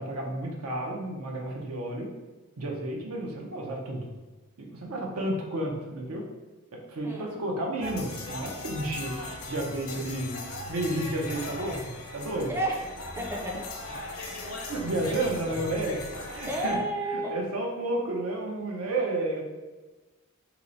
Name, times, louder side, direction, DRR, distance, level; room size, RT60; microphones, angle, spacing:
voice 1, 0.0-2.1 2.6-4.1 4.6-6.3 6.7-10.4 10.7-12.5 14.7-16.0 16.3-16.8 17.1-19.4, right 1 dB, 90° right, 0 dB, 0.6 m, -31 dB
voice 2, 7.0-7.4 12.5-13.6 16.5-17.5, right 1 dB, 10° right, -1 dB, 0.4 m, -31 dB
sound 1, 7.8-16.8, left 2 dB, 65° left, 0.6 m, -38 dB
2.9 x 2.0 x 3.8 m, 1.2 s
head